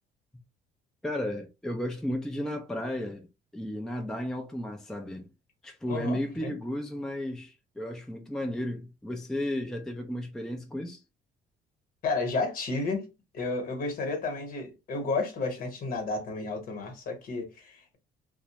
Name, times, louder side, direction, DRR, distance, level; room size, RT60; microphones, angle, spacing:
voice 1, 1.0-3.3 3.5-5.3 5.6-11.0, left 1 dB, 5° left, 0.4 m, -34 dB
voice 2, 5.9-6.5 12.0-13.1 13.3-18.0, left 3 dB, 55° left, 1.0 m, -32 dB
2.4 x 2.1 x 2.9 m
cardioid pair, 110°, 17 cm